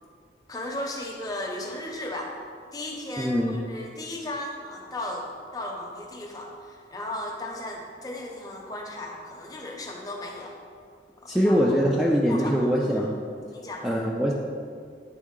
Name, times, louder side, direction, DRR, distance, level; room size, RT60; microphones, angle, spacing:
voice 1, 0.5-2.4 2.7-10.6 11.2-11.8 12.3-13.0 13.5-13.9, left 1 dB, 20° left, 0 dB, 0.7 m, -36 dB
voice 2, 3.2-3.6 11.3-13.2 13.8-14.3, equal, ahead, -4 dB, 0.4 m, -23 dB
9.3 x 3.5 x 3.7 m, 2.2 s
head